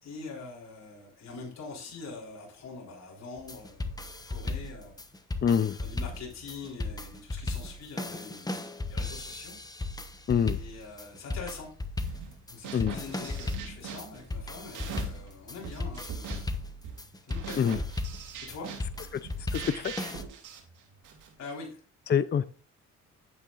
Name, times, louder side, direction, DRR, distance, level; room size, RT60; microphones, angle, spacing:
voice 1, 0.0-5.0 5.8-9.6 10.5-11.7 12.5-16.5 17.2-17.7 18.4-18.7 21.4-21.8, left 4 dB, 60° left, -3 dB, 4.0 m, -44 dB
sound 1, 3.4-20.2, left 2 dB, 15° left, 1.0 m, -36 dB
voice 2, 5.4-5.8 10.3-10.6 12.7-13.0 17.6-17.8 19.5-19.9 22.1-22.4, left 8 dB, 35° left, 14 dB, 0.6 m, -25 dB
sound 2, 12.0-12.4 12.6-15.3 15.6-21.3, right 7 dB, 80° right, 2.8 m, -42 dB
10.5 x 8.7 x 2.5 m, 0.39 s
cardioid pair, 90°, 30 cm